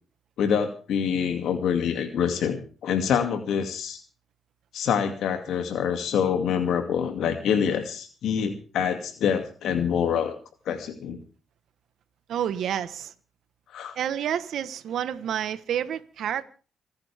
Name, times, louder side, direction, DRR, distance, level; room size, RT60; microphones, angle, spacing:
voice 1, 0.4-4.0 4.7-10.3 10.7-11.2 13.7-14.0, left 7 dB, 75° left, 2.5 m, -26 dB
voice 2, 12.3-13.1 14.0-16.4, right 9 dB, 70° right, 1.2 m, -29 dB
28.0 x 10.0 x 3.6 m
cardioid pair, 90°, 0 cm